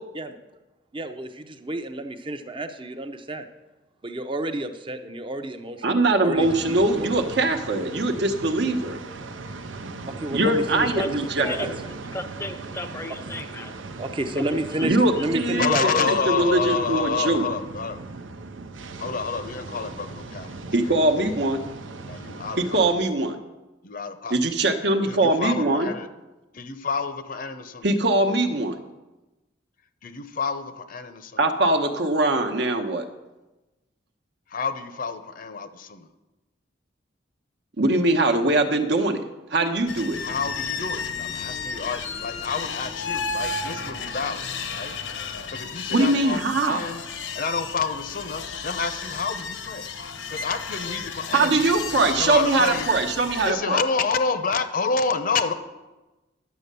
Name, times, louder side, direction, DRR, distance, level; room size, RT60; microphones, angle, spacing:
voice 1, 0.9-3.5 4.0-7.1 10.1-11.7 14.0-16.1, right 1 dB, 25° right, 7 dB, 0.7 m, -31 dB
voice 2, 5.8-9.0 10.3-11.8 14.8-17.5 20.7-21.6 22.6-23.4 24.3-25.9 27.8-28.8 31.4-33.0 37.8-39.2 39.5-40.2 45.9-46.8 51.3-53.8, right 2 dB, 65° right, 6 dB, 1.0 m, -22 dB
sound 1, 6.4-22.9, right 3 dB, 90° right, 0.8 m, -38 dB
voice 3, 12.1-13.7 14.4-14.6, left 1 dB, 15° left, 7 dB, 0.5 m, -33 dB
voice 4, 15.6-18.0 19.0-20.9 22.1-22.8 23.8-24.4 25.1-26.1 26.5-27.9 30.0-31.4 34.5-36.1 40.2-44.9 45.5-47.0 47.3-49.9 50.3-51.6 51.9-52.9 53.4-55.5, left 5 dB, 45° left, 10 dB, 0.7 m, -28 dB
sound 2, 39.9-53.5, left 5 dB, 85° left, 1.1 m, -33 dB
10.5 x 7.4 x 6.8 m, 1.1 s
head